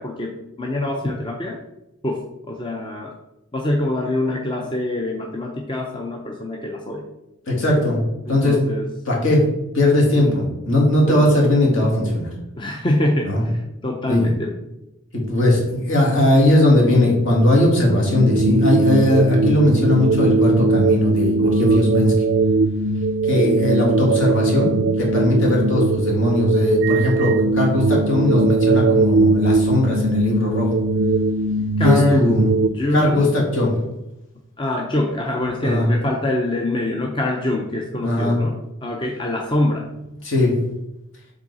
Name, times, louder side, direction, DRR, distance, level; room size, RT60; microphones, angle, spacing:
voice 1, 0.0-1.6 2.0-3.1 3.5-7.1 8.3-8.9 10.2-10.4 11.1-11.3 12.6-14.6 31.8-32.3 32.7-33.3 34.6-40.0, left 1 dB, 20° left, 1 dB, 0.5 m, -24 dB
voice 2, 7.5-8.0 8.3-8.6 9.1-9.4 9.7-12.3 13.2-13.4 14.1-14.3 15.1-22.1 23.3-24.7 25.0-30.7 31.8-32.5 32.9-33.7 35.6-35.9 38.0-38.4 40.2-40.5, left 1 dB, 60° left, -3 dB, 2.1 m, -18 dB
sound 1, 17.8-32.7, right 3 dB, 55° right, 0.4 m, -19 dB
7.5 x 3.8 x 4.1 m, 0.91 s
head